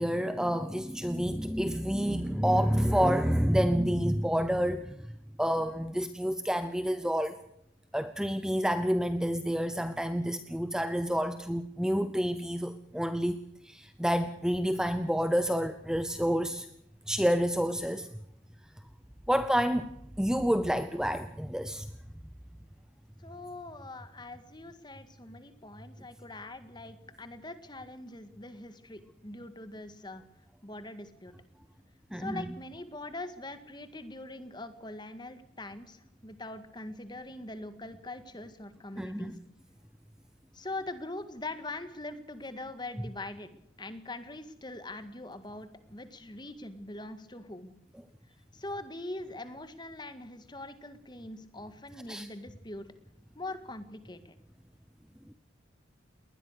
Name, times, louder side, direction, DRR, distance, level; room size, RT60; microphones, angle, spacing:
voice 1, 0.0-5.1 5.4-7.4 7.9-13.4 13.6-16.7 17.1-18.1 19.3-19.9 20.2-21.9 32.1-32.5 39.0-39.3 52.1-52.3, equal, 5° right, 11 dB, 0.7 m, -28 dB
voice 2, 23.2-30.2 30.6-31.3 32.1-39.4 40.5-43.5 43.8-47.7 48.5-52.9 53.4-54.3, left 2 dB, 20° left, 10 dB, 1.8 m, -42 dB
20.5 x 20.0 x 6.7 m, 0.79 s
head